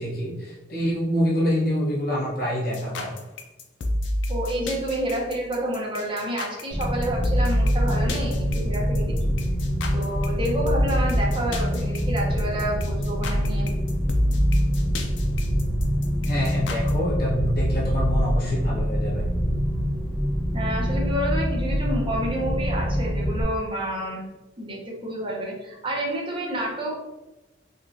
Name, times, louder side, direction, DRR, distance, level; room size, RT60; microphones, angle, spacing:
voice 1, 0.0-3.1 16.2-19.3, equal, 55° left, -6 dB, 1.2 m, -26 dB
sound 1, 2.7-16.9, left 1 dB, 85° left, 0.4 m, -28 dB
voice 2, 4.3-9.3 9.9-13.7 20.5-24.2 24.6-27.0, right 1 dB, 30° right, -3 dB, 0.8 m, -29 dB
sound 2, 6.7-23.4, equal, ahead, 0.9 m, -25 dB
3.6 x 2.4 x 2.7 m, 1.0 s
head